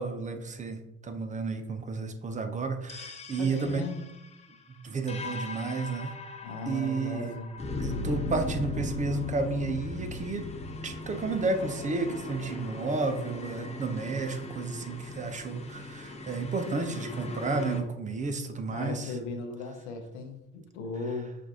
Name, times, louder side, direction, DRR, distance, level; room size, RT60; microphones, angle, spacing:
voice 1, 0.0-3.9 4.8-6.1 6.7-7.3 7.8-10.4 10.8-19.1, right 3 dB, 20° right, 7 dB, 0.6 m, -32 dB
sound 1, 2.9-17.8, left 2 dB, 20° left, 0.6 m, -38 dB
voice 2, 3.3-4.1 6.4-7.5 18.7-21.4, left 3 dB, 75° left, 5 dB, 0.7 m, -37 dB
6.0 x 2.5 x 2.8 m, 0.87 s
figure-of-eight pair, 55°, 34 cm